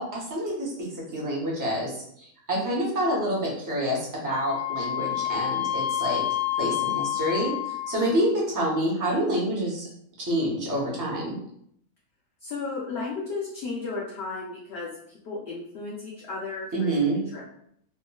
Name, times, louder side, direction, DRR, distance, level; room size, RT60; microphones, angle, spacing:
voice 1, 0.0-6.2 6.6-9.9 10.2-11.4 16.7-17.2, right 1 dB, 20° right, -5 dB, 0.5 m, -27 dB
Wind instrument woodwind instrument, 4.3-8.2, left 12 dB, 90° left, 1.2 m, -29 dB
voice 2, 12.4-14.9 15.2-17.4, left 4 dB, 60° left, -4 dB, 0.7 m, -34 dB
3.6 x 2.1 x 2.2 m, 0.69 s
omnidirectional pair, 1.5 m